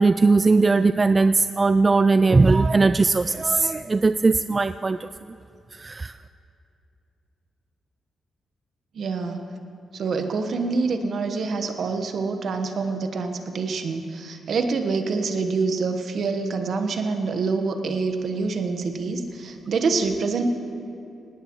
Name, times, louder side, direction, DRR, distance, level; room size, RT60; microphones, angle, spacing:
voice 1, 0.0-5.1 5.7-6.1, right 3 dB, 35° right, 13 dB, 0.3 m, -19 dB
voice 2, 8.9-9.5 9.9-20.4, right 4 dB, 65° right, 6 dB, 1.2 m, -26 dB
18.5 x 18.0 x 3.1 m, 2.6 s
supercardioid pair, 45°, 0 cm